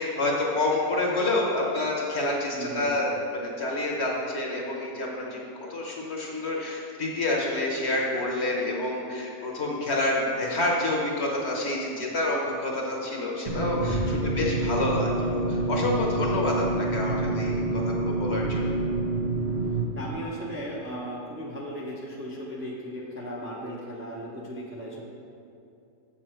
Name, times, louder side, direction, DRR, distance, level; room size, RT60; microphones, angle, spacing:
voice 1, 0.0-5.4 5.7-14.0 14.2-18.9, left 2 dB, 50° left, -2 dB, 1.2 m, -28 dB
voice 2, 2.5-2.9 13.9-14.0 19.9-25.0, equal, 10° right, -4 dB, 0.7 m, -36 dB
sound 1, 13.5-19.8, right 2 dB, 55° right, 0.8 m, -27 dB
7.1 x 6.2 x 4.5 m, 2.6 s
omnidirectional pair, 1.6 m